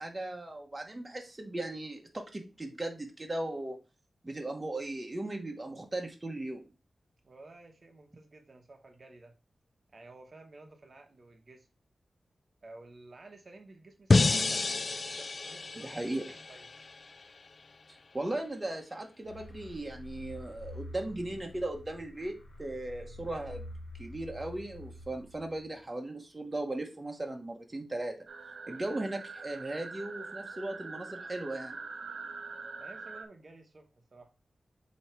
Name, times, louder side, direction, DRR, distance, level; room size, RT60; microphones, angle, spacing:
voice 1, 0.0-3.8 4.2-6.7 15.8-16.3 18.1-23.6 24.0-28.2 28.7-31.8, right 1 dB, 25° right, 2 dB, 1.2 m, -37 dB
voice 2, 7.2-9.4 9.9-11.7 12.6-14.7 15.0-16.7 28.8-29.0 32.8-34.3, right 2 dB, 50° right, 3 dB, 1.1 m, -53 dB
sound 1, 14.1-17.2, left 3 dB, 45° left, 0.3 m, -29 dB
sound 2, 19.2-25.8, left 1 dB, 65° left, 1.6 m, -47 dB
sound 3, 28.3-33.2, right 4 dB, 70° right, 0.9 m, -44 dB
7.8 x 3.1 x 4.5 m, 0.31 s
wide cardioid pair, 105°, 0 cm